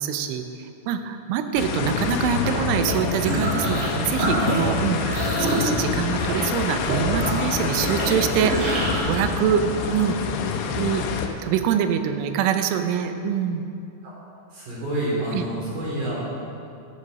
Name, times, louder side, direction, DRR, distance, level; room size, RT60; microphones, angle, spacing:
voice 1, 0.0-10.2 10.8-11.0 11.4-13.7 15.3-15.4, right 8 dB, 90° right, 8 dB, 3.2 m, -25 dB
sound 1, 1.6-11.3, left 6 dB, 75° left, 2.9 m, -27 dB
sound 2, 2.3-3.9 4.2-9.0, right 1 dB, 60° right, 4.7 m, -26 dB
voice 2, 14.5-16.3, right 1 dB, 45° right, -6 dB, 4.4 m, -28 dB
13.0 x 8.2 x 6.5 m, 2.6 s
omnidirectional pair, 5.4 m